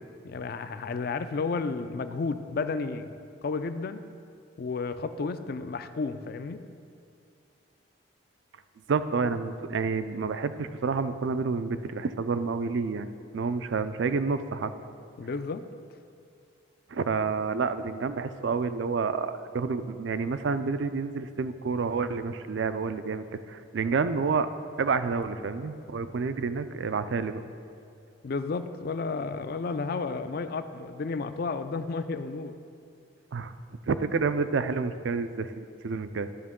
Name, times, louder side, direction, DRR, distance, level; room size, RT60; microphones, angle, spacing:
voice 1, 0.2-4.0 4.6-6.6 15.2-15.6 28.2-32.6, left 4 dB, 50° left, 11 dB, 0.4 m, -32 dB
voice 2, 8.9-13.1 13.3-14.7 16.9-24.5 24.8-27.4 33.3-33.5 33.9-36.3, right 4 dB, 65° right, 12 dB, 0.4 m, -29 dB
12.5 x 6.0 x 3.7 m, 2.4 s
head